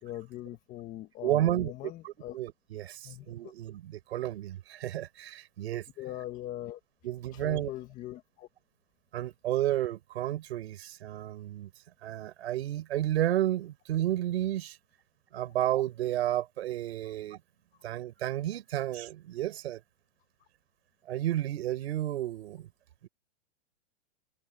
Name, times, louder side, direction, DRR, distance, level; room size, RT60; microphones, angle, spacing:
voice 1, 0.0-2.4 3.0-3.5 6.0-6.8 7.3-8.5 17.0-17.1, left 14 dB, 20° left, 1.8 m, -41 dB
voice 2, 1.2-5.8 7.0-7.7 9.1-11.7 12.0-14.8 15.3-17.4 17.8-19.8 21.1-22.7 23.0-23.1, right 13 dB, 60° right, 5.0 m, -32 dB
hypercardioid pair, 165°, 36 cm